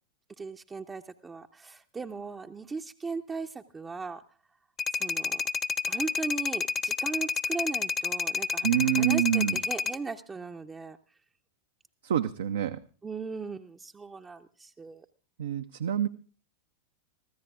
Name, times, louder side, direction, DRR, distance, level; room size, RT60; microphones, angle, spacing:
voice 1, 0.4-4.2 4.9-5.4 5.9-11.0 13.0-15.1, right 4 dB, 15° right, 6 dB, 0.6 m, -38 dB
sound 1, 4.8-10.0, left 5 dB, 20° left, 0.7 m, -30 dB
voice 2, 8.6-9.6 12.0-12.8 15.4-16.1, right 11 dB, 60° right, 10 dB, 0.5 m, -26 dB
24.0 x 15.0 x 2.4 m, 0.39 s
figure-of-eight pair, 90°, 0 cm